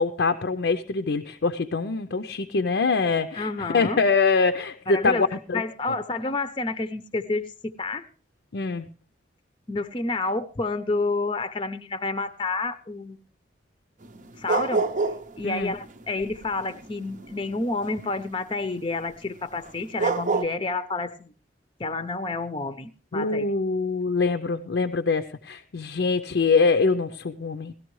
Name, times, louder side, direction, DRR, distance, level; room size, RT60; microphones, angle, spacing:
voice 1, 0.0-5.6 8.5-8.9 15.4-15.7 23.1-27.7, left 4 dB, 70° left, 7 dB, 0.5 m, -24 dB
voice 2, 3.3-4.0 4.9-5.3 5.5-8.0 9.7-13.2 14.4-14.9 15.4-21.3 21.8-23.5, left 3 dB, 25° left, 11 dB, 0.6 m, -29 dB
sound 1, 14.0-15.4 15.6-18.0 19.7-19.8 20.0-20.4, right 4 dB, 45° right, 0.6 m, -26 dB
18.0 x 13.0 x 3.1 m, 0.36 s
head